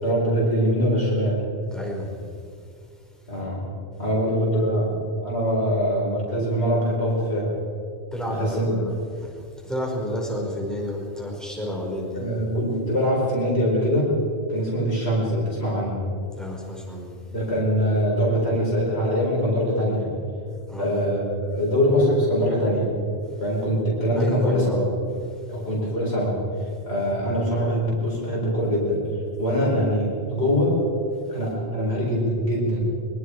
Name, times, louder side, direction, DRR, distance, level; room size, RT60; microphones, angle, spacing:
voice 1, 0.0-1.4 3.3-3.6 4.0-7.6 8.3-8.7 12.1-14.1 14.5-16.0 17.3-20.1 20.8-22.9 23.4-24.9 25.5-26.4 26.9-29.0 29.4-30.8 31.3-32.9, equal, 75° left, -5 dB, 5.0 m, -23 dB
voice 2, 1.7-2.2 8.1-12.3 16.4-17.2 20.7-21.0 23.3-23.4 24.2-24.9 25.3-25.6, equal, ahead, -2 dB, 5.4 m, -31 dB
24.0 x 23.0 x 4.9 m, 2.4 s
omnidirectional pair, 1.1 m